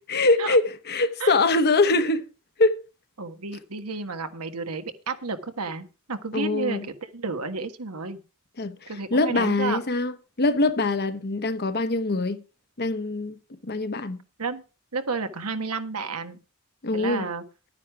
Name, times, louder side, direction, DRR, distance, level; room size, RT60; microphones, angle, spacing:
voice 1, 0.1-2.2 2.6-2.8 6.3-6.9 8.6-12.4 12.8-13.4 13.6-14.2 16.8-17.3, left 2 dB, 45° left, 1.0 m, -23 dB
voice 2, 3.2-8.2 8.9-9.8 14.4-14.6 14.9-16.4 16.9-17.4, right 4 dB, 85° right, 1.5 m, -31 dB
11.5 x 9.8 x 4.8 m
head